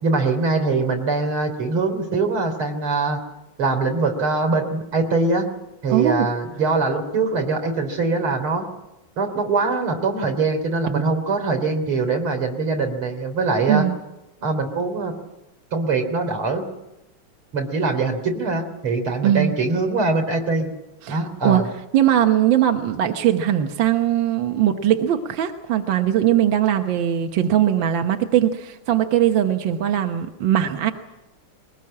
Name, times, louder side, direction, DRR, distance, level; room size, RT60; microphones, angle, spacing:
voice 1, 0.0-3.2 3.6-5.5 5.8-8.7 9.2-13.9 14.4-15.1 15.7-16.6 17.5-20.7 21.1-21.6, right 3 dB, 90° right, 5 dB, 4.1 m, -22 dB
voice 2, 5.9-6.3 13.7-14.0 19.2-19.6 21.0-21.6 21.9-30.9, right 11 dB, 65° right, 6 dB, 1.8 m, -20 dB
21.5 x 20.0 x 8.7 m, 0.96 s
omnidirectional pair, 2.3 m